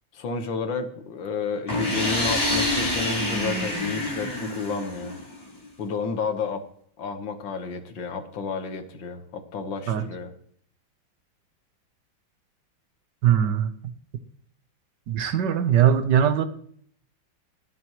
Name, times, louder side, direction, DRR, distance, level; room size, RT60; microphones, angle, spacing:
voice 1, 0.1-5.2 5.8-6.6 7.0-10.3, left 5 dB, 80° left, 2.1 m, -31 dB
sound 1, 1.7-5.4, left 1 dB, 20° left, 5.6 m, -27 dB
voice 2, 13.2-13.7 15.1-16.4, right 9 dB, 70° right, 1.5 m, -20 dB
22.5 x 7.8 x 3.1 m
omnidirectional pair, 2.0 m